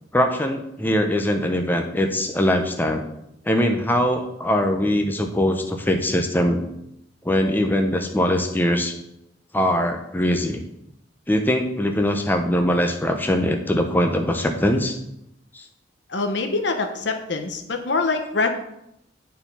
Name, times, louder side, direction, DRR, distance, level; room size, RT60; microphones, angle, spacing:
voice 1, 0.1-3.0 3.4-6.6 7.2-8.9 9.5-10.6 11.3-15.0 15.5-15.6, left 1 dB, 10° left, 4 dB, 0.7 m, -22 dB
voice 2, 16.1-18.5, left 3 dB, 70° left, 5 dB, 1.1 m, -24 dB
9.5 x 4.5 x 5.4 m, 0.80 s
head